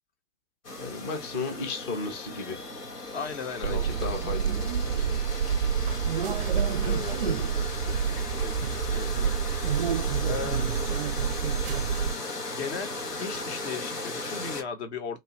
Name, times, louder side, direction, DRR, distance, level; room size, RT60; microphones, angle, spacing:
sound 1, 0.6-14.6, left 2 dB, 90° left, 0.9 m, -37 dB
voice 1, 0.8-2.6 3.6-4.7, left 3 dB, 20° left, 0.5 m, -34 dB
voice 2, 3.1-4.4 4.8-5.5 6.3-9.3 9.7-9.9 10.3-11.1 12.5-15.2, left 6 dB, 45° left, 0.9 m, -38 dB
sound 2, 3.6-12.1, right 7 dB, 40° right, 0.4 m, -28 dB
3.0 x 2.3 x 2.8 m
figure-of-eight pair, 115°, 46 cm